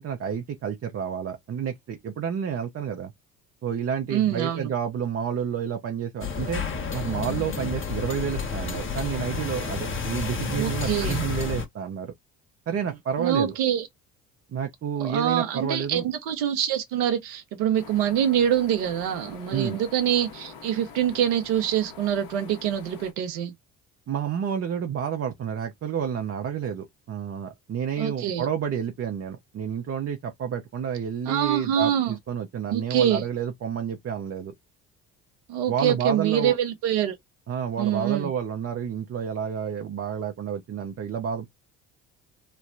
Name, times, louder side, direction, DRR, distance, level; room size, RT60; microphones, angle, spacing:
voice 1, 0.0-3.1 3.6-6.6 6.9-12.1 12.7-13.5 14.5-16.1 19.5-19.8 24.1-34.5 35.7-36.6 37.5-41.5, right 7 dB, 35° right, 0.7 m, -30 dB
voice 2, 4.1-4.7 10.5-11.2 13.2-13.9 15.0-23.5 28.0-28.5 31.3-32.2 32.7-33.2 35.5-37.2 37.8-38.3, right 10 dB, 70° right, 0.9 m, -25 dB
sound 1, 6.2-11.7, left 5 dB, 30° left, 1.0 m, -30 dB
sound 2, 17.7-23.1, left 6 dB, 55° left, 1.2 m, -45 dB
3.2 x 2.1 x 2.5 m
hypercardioid pair, 55°, 41 cm